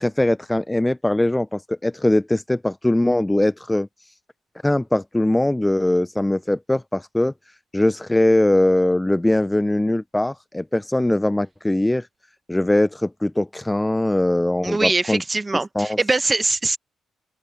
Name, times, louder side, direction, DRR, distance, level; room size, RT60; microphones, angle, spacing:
voice 1, 0.0-3.9 4.6-7.3 7.7-12.1 12.5-15.2 15.8-16.0, left 1 dB, 10° left, 0.4 m, -21 dB
voice 2, 14.6-16.8, right 3 dB, 20° right, 1.0 m, -22 dB
open air
cardioid pair, 90°, 0 cm